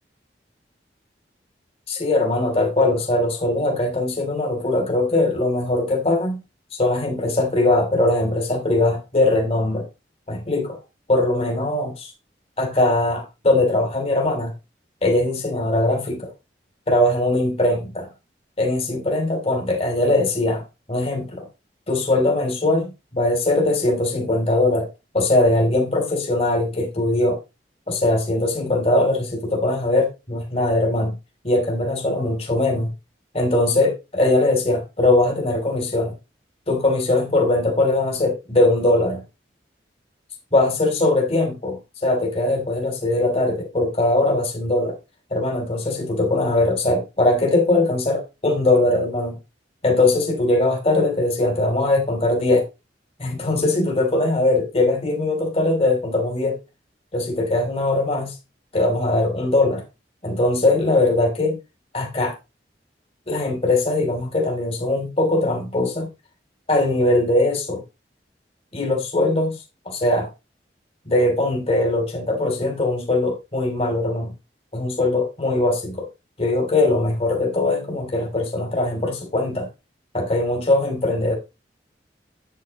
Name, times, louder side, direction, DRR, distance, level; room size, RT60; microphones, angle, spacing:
voice 1, 1.9-6.4 6.7-9.9 10.3-10.8 11.1-12.1 12.6-14.5 15.0-16.3 16.9-18.1 18.6-20.6 20.9-21.5 21.9-24.9 25.1-27.4 27.9-31.1 31.4-32.9 33.3-36.1 36.7-39.2 40.5-45.0 45.3-49.4 49.8-52.6 53.2-56.6 57.1-58.4 58.7-59.8 60.2-61.6 61.9-62.4 63.3-66.1 66.7-67.8 68.7-70.3 71.1-74.3 74.7-76.0 76.4-79.7 80.1-81.4, left 2 dB, 35° left, 2.8 m, -21 dB
9.2 x 8.4 x 2.9 m
head